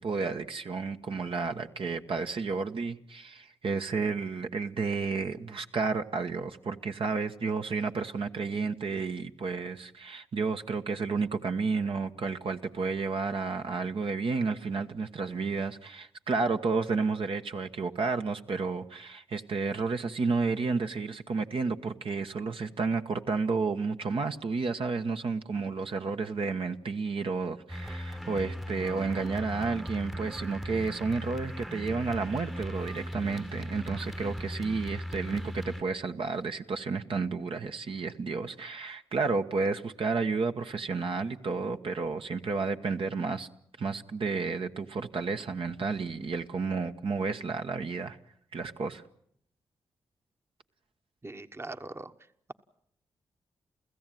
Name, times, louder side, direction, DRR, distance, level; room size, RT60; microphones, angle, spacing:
voice 1, 0.0-43.5 43.8-48.2 48.5-49.0, right 4 dB, 60° right, 1.2 m, -31 dB
sound 1, 27.7-35.8, equal, 5° right, 1.0 m, -38 dB
voice 2, 51.2-52.1, right 2 dB, 25° right, 1.1 m, -41 dB
29.0 x 15.5 x 9.2 m
cardioid pair, 55°, 10 cm